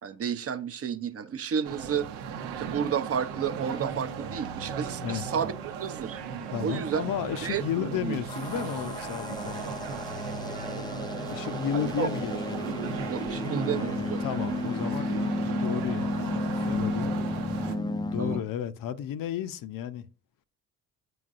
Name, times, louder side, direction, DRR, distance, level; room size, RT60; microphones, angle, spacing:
voice 1, 0.0-2.1 2.6-6.2 6.6-7.1 7.4-8.2 11.7-12.1 13.1-14.2 17.6-18.4, right 7 dB, 40° right, 0.6 m, -32 dB
sound 1, 1.6-17.8, right 6 dB, 85° right, 0.8 m, -36 dB
voice 2, 5.0-5.4 6.5-9.7 11.3-12.6 13.7-17.2 18.1-20.1, left 10 dB, 60° left, 0.6 m, -33 dB
sound 2, 8.3-18.4, left 2 dB, 10° left, 0.4 m, -33 dB
7.7 x 5.2 x 2.5 m
supercardioid pair, 65°, 38 cm